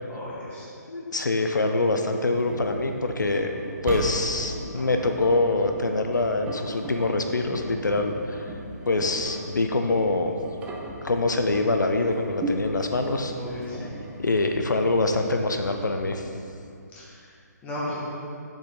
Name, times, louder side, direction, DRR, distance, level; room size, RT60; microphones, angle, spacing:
voice 1, 0.1-0.7 13.3-13.9 16.9-17.2 17.6-17.9, left 1 dB, 15° left, -7 dB, 1.7 m, -35 dB
voice 2, 0.9-3.5 3.8-8.5 8.9-10.3 11.0-13.3 14.2-16.3, left 2 dB, 90° left, 5 dB, 0.6 m, -25 dB
Engine, 2.3-16.5, right 1 dB, 15° right, 0.7 m, -37 dB
7.0 x 6.2 x 3.9 m, 2.5 s
figure-of-eight pair, 150°, 10 cm